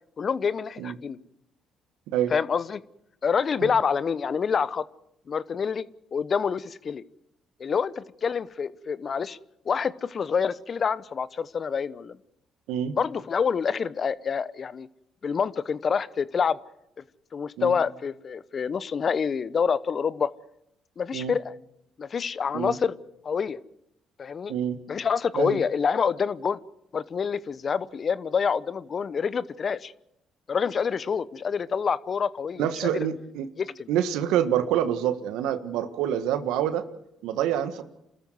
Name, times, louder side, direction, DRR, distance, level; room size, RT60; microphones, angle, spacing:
voice 1, 0.2-1.2 2.3-2.8 3.2-4.8 5.3-5.9 6.1-7.0 7.6-9.4 9.7-12.2 13.0-14.9 15.2-16.6 17.3-20.3 21.0-21.5 22.0-22.9 23.2-23.6 24.2-24.5 24.9-26.6 26.9-29.9 30.5-33.1 33.6-33.9, left 6 dB, 50° left, 17 dB, 0.9 m, -27 dB
voice 2, 32.6-33.5 33.9-36.8 37.2-37.8, right 10 dB, 80° right, 11 dB, 1.5 m, -26 dB
28.5 x 13.5 x 7.9 m, 0.82 s
hypercardioid pair, 55°, 0 cm